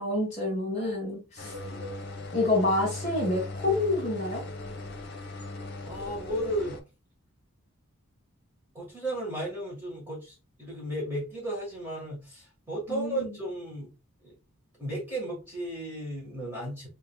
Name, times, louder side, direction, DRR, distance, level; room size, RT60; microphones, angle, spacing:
voice 1, 0.0-1.5 2.3-4.4 12.9-13.4, left 2 dB, 30° left, 1.9 m, -28 dB
sound 1, 1.4-6.8, left 2 dB, 50° left, 0.9 m, -39 dB
voice 2, 1.4-1.9 5.8-6.8 8.7-13.9 14.2-14.3 14.8-16.9, right 1 dB, 10° right, 1.5 m, -34 dB
4.0 x 3.7 x 2.3 m
head